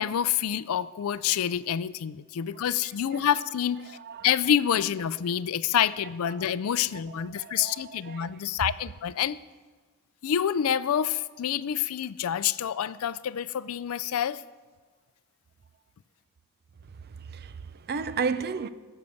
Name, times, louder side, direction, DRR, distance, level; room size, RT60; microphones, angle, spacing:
voice 1, 0.0-3.8 4.2-9.4 10.2-14.4, left 9 dB, 70° left, 0.4 m, -27 dB
voice 2, 7.1-8.4 17.2-18.7, right 5 dB, 45° right, 0.5 m, -34 dB
15.5 x 6.6 x 7.0 m
head